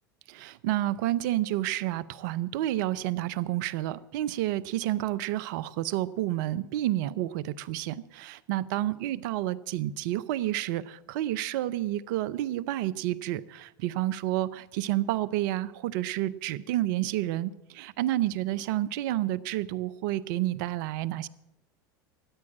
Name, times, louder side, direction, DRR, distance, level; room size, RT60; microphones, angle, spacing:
voice 1, 0.3-21.3, right 14 dB, 65° right, 19 dB, 0.6 m, -30 dB
13.5 x 9.6 x 7.3 m, 0.91 s
hypercardioid pair, 85°, 11 cm